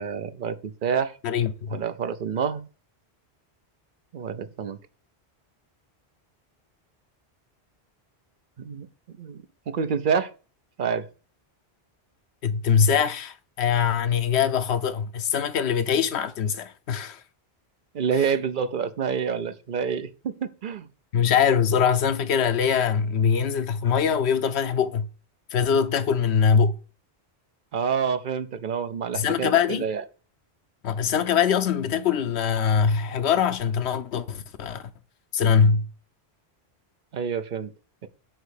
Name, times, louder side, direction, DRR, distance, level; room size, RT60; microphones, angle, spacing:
voice 1, 0.0-1.2 1.7-2.7 4.1-4.8 8.6-8.9 9.2-10.3 10.8-11.1 17.9-20.9 27.7-30.0 37.1-37.7 38.0-38.1, right 6 dB, 55° right, 0.8 m, -28 dB
voice 2, 1.2-1.8 12.4-17.2 21.1-25.1 25.5-26.7 29.1-29.9 30.8-34.9 35.3-35.9, left 7 dB, 80° left, 1.0 m, -23 dB
9.0 x 3.1 x 6.5 m
omnidirectional pair, 1.1 m